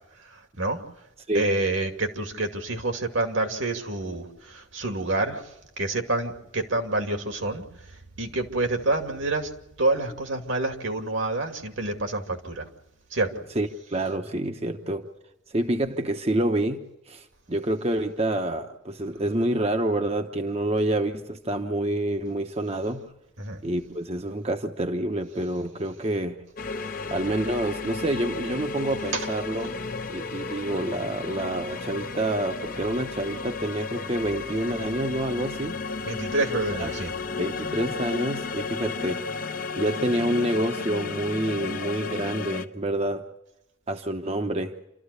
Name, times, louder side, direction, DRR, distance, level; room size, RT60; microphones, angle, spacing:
voice 1, 0.3-0.8 1.3-5.4 5.8-7.6 8.2-9.5 9.8-12.7 13.1-13.3 23.4-23.6 29.1-29.3 36.0-37.1, right 2 dB, 75° right, 4 dB, 2.5 m, -27 dB
voice 2, 13.5-15.1 15.5-23.1 23.6-26.4 27.1-29.7 30.1-35.8 36.7-36.9 37.4-39.2 39.7-43.3 43.9-44.8, right 1 dB, 30° right, 5 dB, 1.0 m, -28 dB
sound 1, 26.6-42.7, left 4 dB, 45° left, 0.9 m, -33 dB
28.0 x 14.0 x 8.4 m, 0.92 s
head